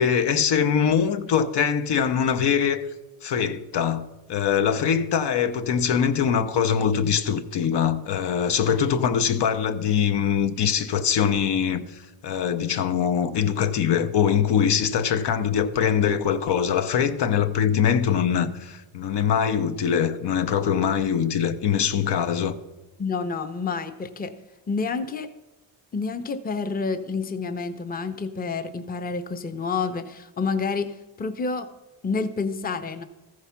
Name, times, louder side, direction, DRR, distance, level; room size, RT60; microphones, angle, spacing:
voice 1, 0.0-2.9 3.2-22.6, left 8 dB, 70° left, 0.8 m, -23 dB
voice 2, 23.0-24.3 24.7-25.3 25.9-31.7 32.0-33.0, left 4 dB, 20° left, 0.7 m, -29 dB
14.0 x 4.8 x 5.8 m
cardioid pair, 100°, 43 cm